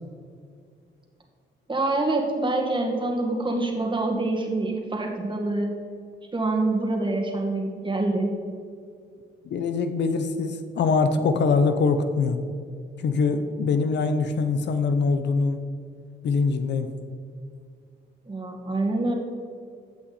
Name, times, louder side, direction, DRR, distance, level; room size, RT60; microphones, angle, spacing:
voice 1, 1.7-5.7 6.3-8.3 18.3-19.1, right 2 dB, 25° right, 1 dB, 2.0 m, -26 dB
voice 2, 9.4-12.4 13.0-15.6 16.2-16.9, left 4 dB, 60° left, 8 dB, 0.8 m, -23 dB
15.5 x 5.9 x 4.2 m, 2.3 s
cardioid pair, 90°, 20 cm